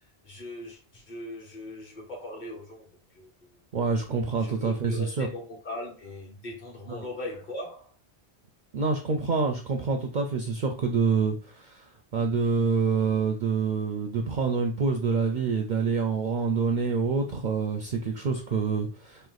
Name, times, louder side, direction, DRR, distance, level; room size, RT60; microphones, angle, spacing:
voice 1, 0.2-3.6 4.3-7.9, left 1 dB, 45° left, 1.2 m, -40 dB
voice 2, 3.7-5.3 6.9-7.0 8.7-11.9 12.1-19.3, right 5 dB, 55° right, 0.5 m, -27 dB
3.1 x 2.8 x 3.9 m
omnidirectional pair, 1.1 m